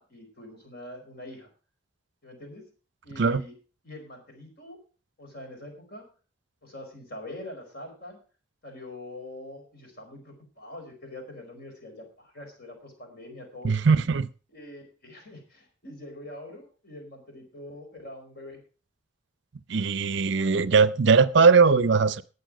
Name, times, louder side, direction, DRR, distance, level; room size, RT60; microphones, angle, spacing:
voice 1, 0.0-1.5 2.2-2.7 3.0-3.5 3.8-4.8 5.2-6.0 6.6-8.2 8.6-13.8 14.5-18.6, left 1 dB, 45° left, 3 dB, 4.7 m, -44 dB
voice 2, 13.6-14.3 19.7-22.2, right 5 dB, 55° right, 16 dB, 0.5 m, -20 dB
18.5 x 7.0 x 5.0 m, 0.36 s
head